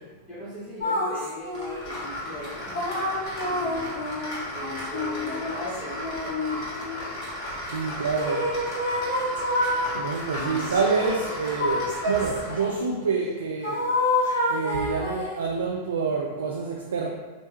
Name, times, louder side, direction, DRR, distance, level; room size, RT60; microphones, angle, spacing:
voice 1, 0.3-2.9 3.4-3.9 4.5-7.1 10.3-10.7 12.5-12.7, left 1 dB, 10° left, -11 dB, 0.9 m, -39 dB
sound 1, 0.8-2.0 2.7-7.1 8.1-9.9 10.4-12.8 13.6-15.4, left 1 dB, 65° left, 1.0 m, -28 dB
sound 2, 1.5-12.7, left 1 dB, 35° left, 1.5 m, -35 dB
voice 2, 7.7-8.5 9.9-13.8 14.5-17.1, right 5 dB, 65° right, 0 dB, 0.3 m, -27 dB
4.9 x 2.2 x 3.0 m, 1.2 s
figure-of-eight pair, 90°, 0 cm